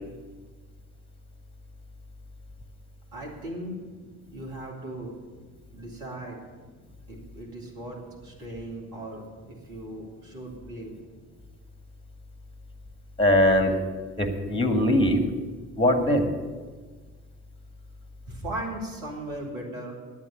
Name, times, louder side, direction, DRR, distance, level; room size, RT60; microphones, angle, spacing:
voice 1, 3.1-3.8 4.3-5.2 5.7-6.4 7.1-11.0 18.3-20.0, right 1 dB, 80° right, -1 dB, 2.7 m, -37 dB
voice 2, 13.2-13.8 14.2-15.2 15.8-16.3, left 1 dB, 10° left, 7 dB, 1.9 m, -21 dB
10.0 x 8.9 x 9.3 m, 1.4 s
hypercardioid pair, 50°, 43 cm